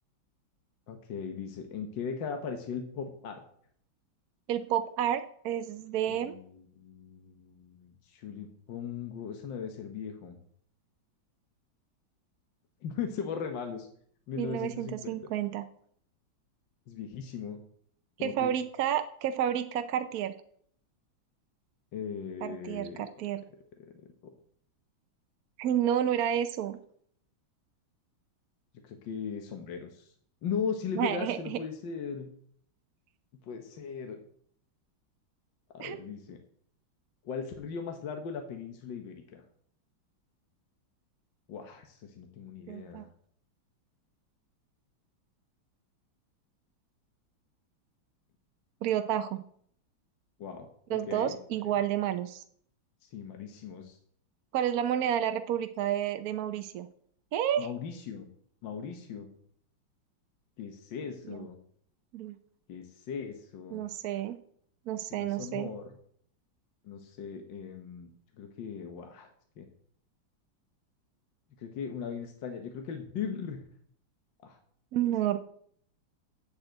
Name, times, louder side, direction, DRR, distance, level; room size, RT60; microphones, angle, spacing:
voice 1, 0.9-3.4 6.1-10.4 12.8-13.9 14.3-15.2 16.9-17.6 18.2-18.5 21.9-23.1 28.8-30.1 30.4-32.3 33.5-34.2 35.7-36.4 37.2-39.4 41.5-43.1 50.4-51.4 53.0-54.0 57.6-58.3 58.6-59.3 60.6-61.6 62.7-63.8 65.2-65.9 66.8-68.1 68.4-69.3 69.6-69.7 71.6-73.6 74.4-74.6, left 6 dB, 70° left, 5 dB, 1.7 m, -38 dB
voice 2, 4.5-6.4 14.4-15.7 18.2-20.3 22.4-23.4 25.6-26.8 31.0-31.6 35.8-36.0 42.7-43.0 48.8-49.4 50.9-52.4 54.5-56.9 57.3-57.7 61.3-61.5 62.1-62.4 63.7-64.4 64.9-65.7 74.9-75.4, right 10 dB, 70° right, 9 dB, 0.9 m, -30 dB
7.6 x 7.4 x 7.9 m, 0.63 s
omnidirectional pair, 2.2 m